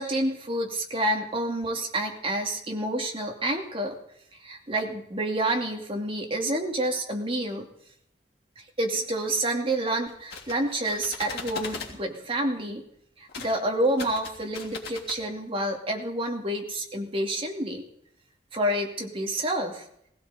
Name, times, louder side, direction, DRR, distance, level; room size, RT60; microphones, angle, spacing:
voice 1, 0.0-4.0 4.4-7.7 8.8-12.8 13.2-17.8 18.5-19.8, right 1 dB, 30° right, 1 dB, 2.4 m, -28 dB
sound 1, 10.1-11.9 13.3-13.5 13.9-15.2, left 4 dB, 65° left, 3.2 m, -39 dB
19.5 x 16.0 x 4.1 m, 0.72 s
head